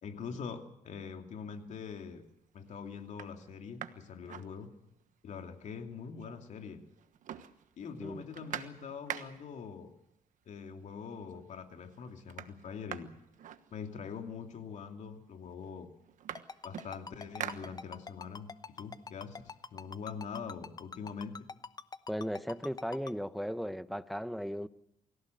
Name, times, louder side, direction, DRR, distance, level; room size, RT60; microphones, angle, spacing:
voice 1, 0.0-2.2 2.5-4.7 5.2-6.8 7.8-9.9 10.5-13.1 13.7-15.9 16.6-21.3, left 6 dB, 60° left, 2.8 m, -43 dB
sound 1, 1.7-2.1 2.6-2.7 3.0-5.1 5.5-5.6 5.8-6.6 6.9-9.6 10.6-10.7 11.1-11.6 11.8-14.2 15.0-15.1 15.4-18.3 18.7-20.4, right 9 dB, 70° right, 1.3 m, -46 dB
Ringtone, 16.4-23.1, left 4 dB, 30° left, 0.9 m, -44 dB
voice 2, 22.1-24.7, equal, ahead, 0.9 m, -36 dB
25.0 x 16.0 x 7.9 m
cardioid pair, 95°, 14 cm